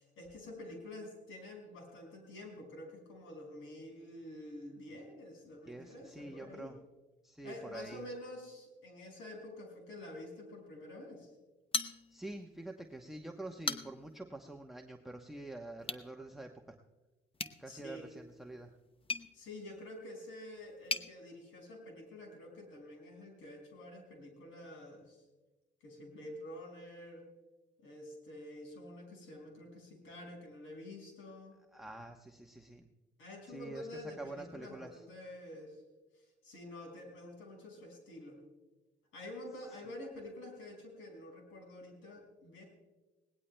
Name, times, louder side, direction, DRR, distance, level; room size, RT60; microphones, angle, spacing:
voice 1, 0.0-6.7 7.4-11.3 17.7-18.1 19.3-25.2 25.8-27.3 27.8-31.6 33.2-35.8 36.1-38.4 39.1-42.6, left 1 dB, 85° left, 1 dB, 5.7 m, -48 dB
voice 2, 5.7-6.8 7.2-8.0 12.1-16.8 17.6-18.7 31.7-32.9 33.5-35.0, right 2 dB, ahead, 1 dB, 1.0 m, -46 dB
sound 1, 11.7-12.5 12.8-12.9 13.4-14.2 15.8-16.1 17.3-21.1, left 4 dB, 25° left, 0.8 m, -40 dB
21.0 x 18.0 x 2.2 m, 1.1 s
cardioid pair, 90°, 20 cm